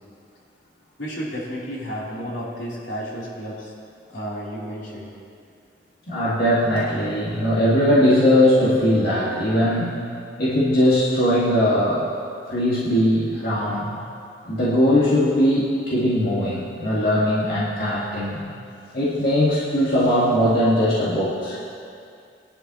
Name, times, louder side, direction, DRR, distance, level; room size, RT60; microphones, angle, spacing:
voice 1, 1.0-3.7 4.1-5.1, equal, 85° left, -7 dB, 3.5 m, -32 dB
voice 2, 6.1-10.0 10.4-12.1 12.5-13.9 14.4-18.4 18.9-21.6, equal, 55° left, -8 dB, 2.0 m, -20 dB
21.0 x 11.0 x 3.0 m, 2.4 s
head